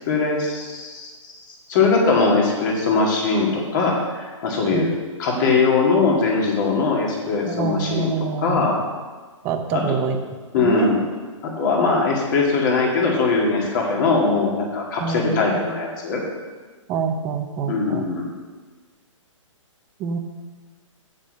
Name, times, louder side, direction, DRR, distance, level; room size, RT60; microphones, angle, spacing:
voice 1, 0.1-1.1 1.7-8.1 8.4-8.8 9.7-10.0 10.5-11.0 11.4-16.2 17.7-18.3, left 4 dB, 35° left, -1 dB, 2.2 m, -21 dB
voice 2, 5.3-5.7 7.5-8.7 9.4-10.2 10.6-11.0 15.0-15.6 16.9-18.0 20.0-20.2, right 5 dB, 15° right, 6 dB, 0.5 m, -26 dB
8.1 x 6.6 x 6.5 m, 1.4 s
hypercardioid pair, 160°, 17 cm